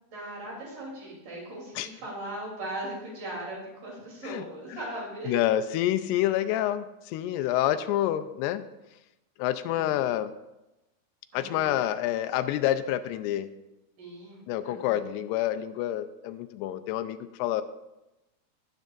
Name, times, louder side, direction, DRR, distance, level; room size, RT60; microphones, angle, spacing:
voice 1, 0.0-5.3 7.4-7.6 9.7-9.8 11.3-11.6 14.0-15.0, right 1 dB, 55° right, -4 dB, 4.4 m, -39 dB
voice 2, 4.2-4.8 5.3-8.6 9.4-10.3 11.3-13.5 14.5-17.6, left 12 dB, 85° left, 10 dB, 2.6 m, -28 dB
17.5 x 8.3 x 2.5 m, 0.97 s
omnidirectional pair, 4.7 m